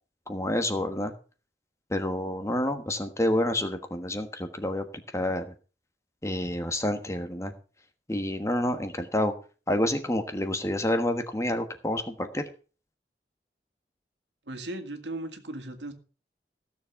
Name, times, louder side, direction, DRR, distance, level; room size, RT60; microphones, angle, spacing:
voice 1, 0.3-1.1 1.9-4.8 5.1-5.5 6.2-7.5 8.1-9.3 9.7-12.4, left 1 dB, 15° left, 7 dB, 1.3 m, -28 dB
voice 2, 14.5-15.9, right 1 dB, 85° right, 6 dB, 2.1 m, -37 dB
15.5 x 7.3 x 5.8 m, 0.37 s
head